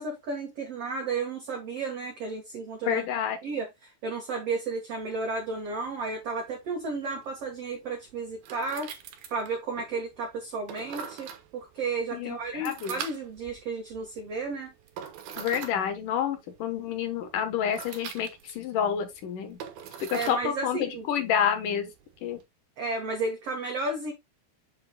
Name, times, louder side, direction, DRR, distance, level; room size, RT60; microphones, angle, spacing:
voice 1, 0.0-3.0 3.4-8.9 9.3-14.7 20.1-21.1 22.8-24.1, right 3 dB, 50° right, 2.0 m, -33 dB
voice 2, 2.9-3.4 12.1-13.0 15.4-19.6 20.0-21.9 22.2-22.4, left 8 dB, 65° left, 2.4 m, -29 dB
sound 1, 4.9-22.4, right 8 dB, 70° right, 2.9 m, -45 dB
7.5 x 7.4 x 2.3 m
omnidirectional pair, 4.7 m